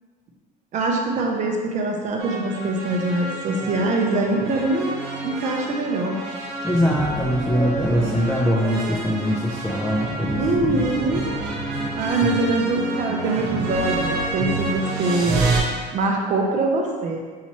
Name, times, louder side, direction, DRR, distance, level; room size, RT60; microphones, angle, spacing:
voice 1, 0.7-4.9 5.2-6.2 10.3-11.3 12.0-15.4 15.7-17.2, right 2 dB, 40° right, 1 dB, 0.6 m, -23 dB
sound 1, 2.2-15.6, right 2 dB, 75° right, 1.1 m, -28 dB
voice 2, 6.6-10.8 12.2-12.4, equal, 5° left, -5 dB, 0.4 m, -22 dB
5.7 x 2.9 x 2.8 m, 1.5 s
cardioid pair, 145°, 18 cm